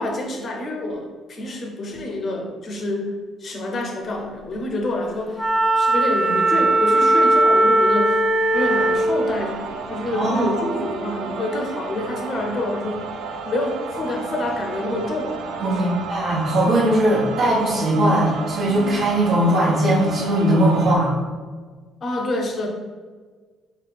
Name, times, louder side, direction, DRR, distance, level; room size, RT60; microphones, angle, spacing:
voice 1, 0.0-3.1 3.4-5.5 5.8-8.2 8.5-13.0 13.4-16.0 22.0-22.7, left 1 dB, 40° left, 2 dB, 0.7 m, -27 dB
Wind instrument woodwind instrument, 5.4-9.1, right 1 dB, 5° right, 0.5 m, -18 dB
sound 1, 8.5-21.0, right 4 dB, 75° right, 0.4 m, -32 dB
voice 2, 10.1-10.6 15.6-21.1, right 1 dB, 55° right, -11 dB, 1.1 m, -19 dB
4.8 x 2.3 x 3.4 m, 1.5 s
cardioid pair, 140°, 0 cm